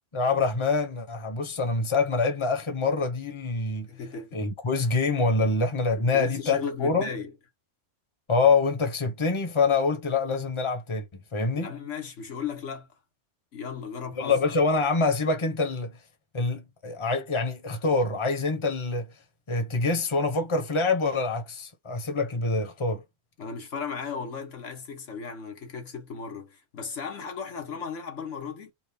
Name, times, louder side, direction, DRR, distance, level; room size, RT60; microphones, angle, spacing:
voice 1, 0.1-3.9 4.3-7.1 8.3-11.1 11.3-11.7 14.2-16.0 16.3-19.1 19.5-23.0, left 3 dB, 25° left, 1.1 m, -25 dB
voice 2, 3.9-4.4 6.0-7.3 11.6-12.9 13.5-14.4 23.4-28.7, left 5 dB, 80° left, 1.6 m, -36 dB
4.7 x 2.5 x 3.5 m
omnidirectional pair, 1.2 m